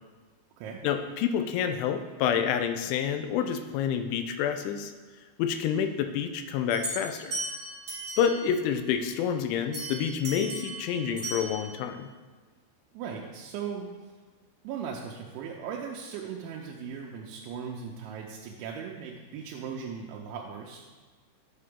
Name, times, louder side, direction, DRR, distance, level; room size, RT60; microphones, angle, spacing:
voice 1, 0.8-4.9 5.4-7.3 8.2-12.1, left 8 dB, 85° left, 7 dB, 3.0 m, -28 dB
sound 1, 6.7-8.5 9.7-11.8, right 2 dB, 30° right, 2.7 m, -37 dB
voice 2, 12.9-13.9 14.6-20.9, right 6 dB, 85° right, -1 dB, 2.9 m, -38 dB
10.5 x 6.7 x 3.6 m, 1.4 s
omnidirectional pair, 5.5 m